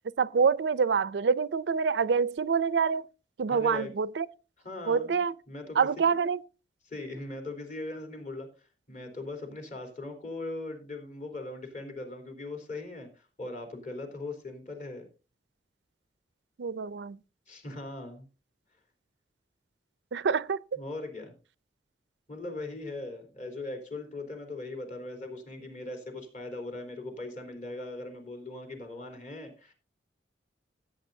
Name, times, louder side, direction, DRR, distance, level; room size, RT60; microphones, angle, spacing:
voice 1, 0.2-3.1 3.4-4.3 4.9-5.3 5.8-6.4 16.6-17.2 20.1-20.6, right 5 dB, 75° right, 0.4 m, -26 dB
voice 2, 3.5-3.9 4.6-5.2 5.5-5.8 6.9-15.1 17.5-18.3 20.8-21.3 22.3-29.7, left 2 dB, 45° left, 3.6 m, -39 dB
16.5 x 8.8 x 2.7 m
head